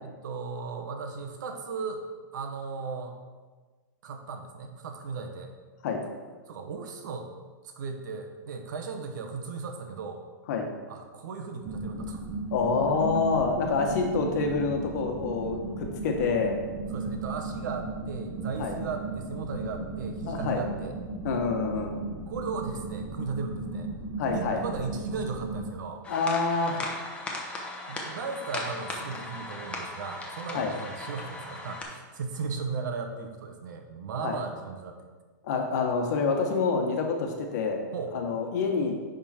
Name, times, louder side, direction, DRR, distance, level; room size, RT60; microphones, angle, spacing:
voice 1, 0.0-2.0 2.3-3.1 4.0-5.5 6.5-7.3 7.6-10.2 10.9-12.2 16.9-21.0 22.3-23.9 24.3-26.0 27.9-35.0 37.9-38.2, right 5 dB, 70° right, 5 dB, 1.1 m, -36 dB
sound 1, 11.6-25.7, right 3 dB, 10° right, 0.9 m, -36 dB
voice 2, 12.5-16.6 18.6-18.8 20.3-20.6 21.2-22.0 24.2-24.6 26.1-26.8 30.5-30.7 34.2-34.4 35.4-37.8 38.1-39.0, left 4 dB, 60° left, 3 dB, 1.4 m, -27 dB
sound 2, 26.0-31.8, left 2 dB, 10° left, 1.0 m, -37 dB
10.5 x 3.8 x 4.4 m, 1.4 s
hypercardioid pair, 150°, 11 cm